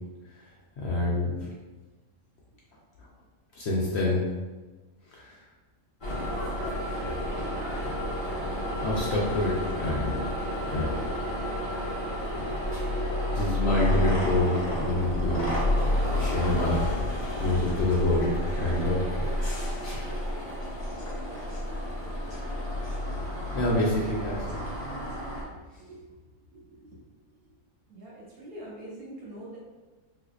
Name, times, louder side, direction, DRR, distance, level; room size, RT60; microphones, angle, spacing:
voice 1, 0.8-1.3 3.6-4.2 5.2-5.3 8.8-10.3 10.7-10.9 13.3-15.5 16.2-16.9 17.4-19.1 19.4-19.7 23.5-24.6, left 1 dB, 65° left, -4 dB, 0.7 m, -27 dB
sound 1, 6.0-25.4, left 1 dB, 45° left, 0.3 m, -30 dB
voice 2, 25.5-26.1 26.5-27.0 27.9-29.6, right 1 dB, 85° right, -6 dB, 1.6 m, -45 dB
3.6 x 2.6 x 2.4 m, 1.2 s
omnidirectional pair, 1.5 m